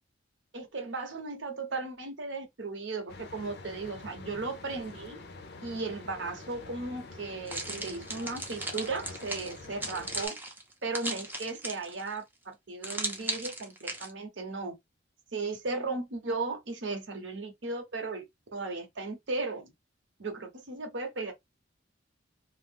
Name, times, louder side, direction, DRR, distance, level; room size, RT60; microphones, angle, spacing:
voice 1, 0.5-5.2 5.6-10.4 10.8-14.8 15.3-18.2 18.5-19.7 20.2-21.3, right 3 dB, 70° right, 0.8 m, -36 dB
sound 1, 3.1-10.3, left 3 dB, 60° left, 0.5 m, -46 dB
sound 2, 7.5-12.1 12.8-14.1, right 2 dB, 10° right, 0.5 m, -37 dB
2.4 x 2.0 x 3.3 m
head